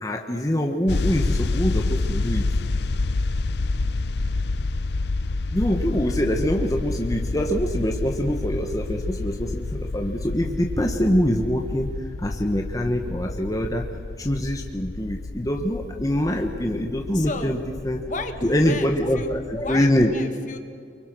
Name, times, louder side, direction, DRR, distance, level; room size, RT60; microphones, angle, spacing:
voice 1, 0.0-2.5 5.5-11.9 12.2-13.9 14.2-17.6 17.8-18.0 18.4-20.1, equal, 20° left, 2 dB, 1.3 m, -24 dB
sound 1, 0.9-20.0, left 3 dB, 65° left, 0.6 m, -29 dB
voice 2, 17.1-17.6 18.1-20.6, left 3 dB, 45° left, 6 dB, 1.7 m, -34 dB
29.0 x 23.5 x 6.2 m, 2.2 s
head